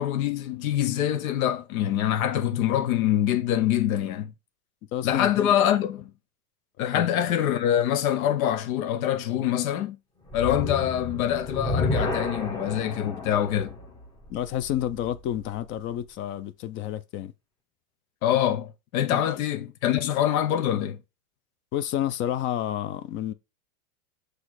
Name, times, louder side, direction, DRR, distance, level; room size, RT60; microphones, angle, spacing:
voice 1, 0.0-4.3 5.0-6.1 6.8-10.0 10.3-13.7 18.2-21.0, left 11 dB, 75° left, 1.1 m, -25 dB
voice 2, 4.9-5.5 6.9-7.1 14.3-17.3 19.1-19.4 21.7-23.3, left 11 dB, 30° left, 0.5 m, -30 dB
sound 1, 10.3-15.6, left 2 dB, 10° left, 1.0 m, -31 dB
6.1 x 3.3 x 4.7 m
supercardioid pair, 145°, 42 cm